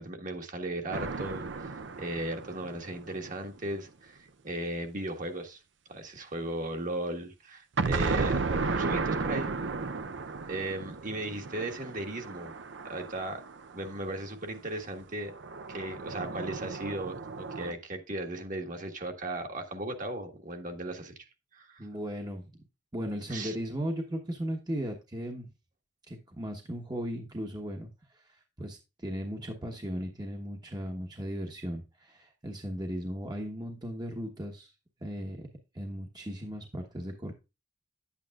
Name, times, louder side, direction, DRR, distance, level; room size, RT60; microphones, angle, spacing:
voice 1, 0.0-1.7 2.0-4.2 4.4-5.6 5.9-8.4 8.7-9.5 10.5-12.5 12.8-13.4 13.7-15.3 15.7-21.1 21.5-21.9 23.3-23.5, right 1 dB, 45° right, 1.6 m, -36 dB
sound 1, 0.9-3.7 7.8-14.0 15.3-17.7, right 4 dB, 70° right, 0.6 m, -34 dB
voice 2, 21.8-22.5 22.9-25.5 26.1-34.7 35.0-35.5 35.7-37.3, equal, 20° right, 1.1 m, -37 dB
10.5 x 8.4 x 2.4 m
head